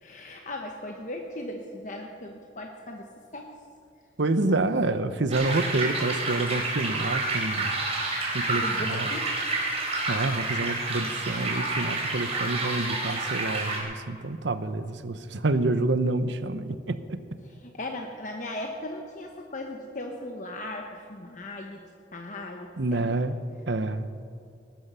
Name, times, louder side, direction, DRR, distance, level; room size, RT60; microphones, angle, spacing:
voice 1, 0.0-3.1 3.3-3.5 4.5-4.7 8.6-9.3 17.6-21.8 22.1-23.2, left 1 dB, 45° left, 2 dB, 1.1 m, -37 dB
voice 2, 4.2-7.8 8.3-9.1 10.1-17.2 22.8-23.4 23.7-24.1, right 2 dB, 80° right, 12 dB, 0.8 m, -28 dB
sound 1, 5.3-13.8, right 2 dB, 35° right, 3.9 m, -29 dB
19.5 x 12.0 x 5.6 m, 2.4 s
head